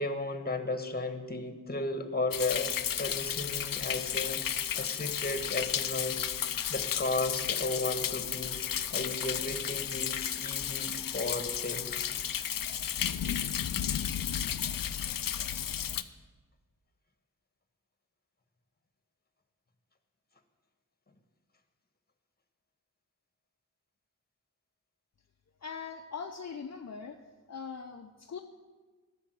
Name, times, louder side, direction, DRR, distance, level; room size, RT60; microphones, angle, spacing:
voice 1, 0.0-2.7 3.0-4.4 4.8-6.3 6.7-8.6 8.9-11.9, left 2 dB, 30° left, 7 dB, 1.5 m, -34 dB
Thunder, 2.3-16.0, left 9 dB, 85° left, 0.6 m, -33 dB
voice 2, 25.6-27.2 27.5-28.4, left 6 dB, 55° left, 3 dB, 0.8 m, -41 dB
13.0 x 7.1 x 9.3 m, 1.3 s
wide cardioid pair, 100°, 33 cm